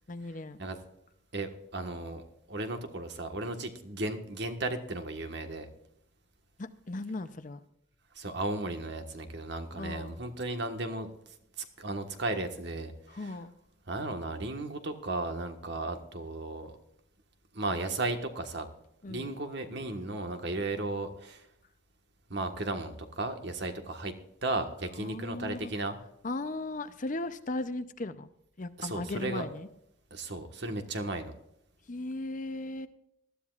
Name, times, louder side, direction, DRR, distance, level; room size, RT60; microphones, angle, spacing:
voice 1, 0.1-0.6 6.6-7.6 9.8-10.2 13.1-13.5 19.0-19.3 25.0-25.7 26.2-28.3 28.6-29.7 31.9-32.9, left 2 dB, 40° left, 12 dB, 0.6 m, -37 dB
voice 2, 1.3-5.7 8.1-11.1 11.8-13.3 13.9-16.7 17.5-18.7 19.1-21.4 22.3-24.1 24.4-26.0 28.8-29.5 30.1-31.3, right 2 dB, 60° right, 6 dB, 1.4 m, -35 dB
20.0 x 13.0 x 2.5 m, 0.78 s
head